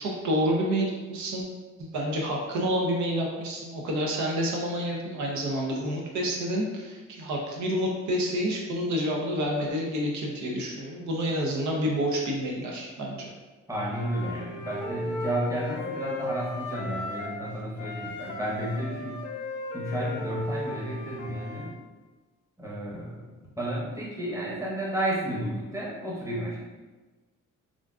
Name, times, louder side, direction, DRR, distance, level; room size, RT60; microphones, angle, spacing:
voice 1, 0.0-1.5 1.8-13.3, equal, 70° right, 0 dB, 0.6 m, -28 dB
voice 2, 13.7-19.2 19.7-21.7 22.6-23.3 23.6-26.6, right 1 dB, 10° right, -5 dB, 0.9 m, -32 dB
Wind instrument woodwind instrument, 13.8-17.5 17.8-21.7, left 2 dB, 80° left, 0.5 m, -36 dB
3.6 x 2.4 x 2.3 m, 1.2 s
cardioid pair, 90°, 30 cm